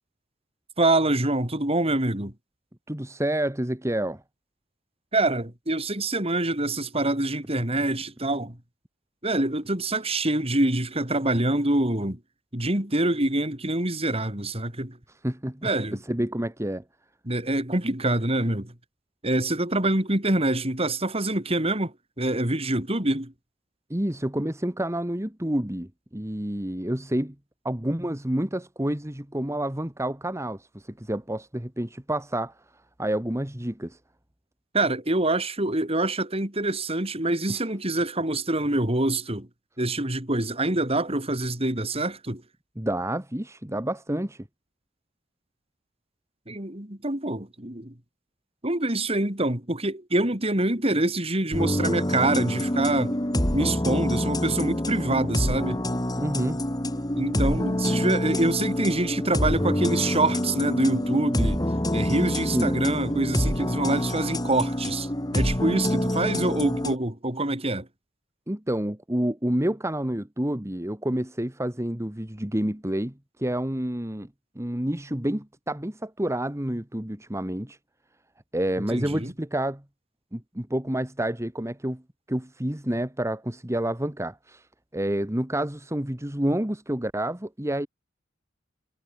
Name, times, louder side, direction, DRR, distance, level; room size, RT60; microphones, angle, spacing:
voice 1, 0.8-2.3 5.1-8.6 9.2-12.2 12.5-15.0 15.6-16.0 17.2-18.7 19.2-23.3 34.7-39.5 39.8-42.4 46.5-47.9 48.6-53.1 53.5-55.8 57.1-61.6 61.9-67.9 78.9-79.3, right 2 dB, 30° right, 4.6 m, -25 dB
voice 2, 2.9-4.2 15.2-15.7 16.1-16.8 23.9-27.3 27.6-32.5 33.0-34.0 37.5-37.6 42.8-44.5 56.2-56.6 62.5-62.8 68.5-74.3 74.5-77.8 78.5-79.8 80.3-82.0 82.3-84.7 84.9-87.9, right 1 dB, 15° right, 1.7 m, -29 dB
sound 1, 51.5-67.0, left 1 dB, 20° left, 2.5 m, -26 dB
head